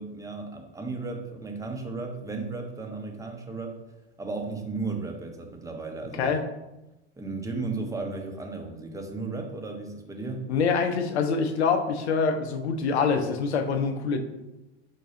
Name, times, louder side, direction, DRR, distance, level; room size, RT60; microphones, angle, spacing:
voice 1, 0.0-3.8 4.2-6.3 7.2-10.5, right 3 dB, 10° right, 2 dB, 0.7 m, -34 dB
voice 2, 10.5-14.2, left 5 dB, 75° left, 7 dB, 0.6 m, -25 dB
5.2 x 2.3 x 4.1 m, 0.98 s
hypercardioid pair, 80°, 33 cm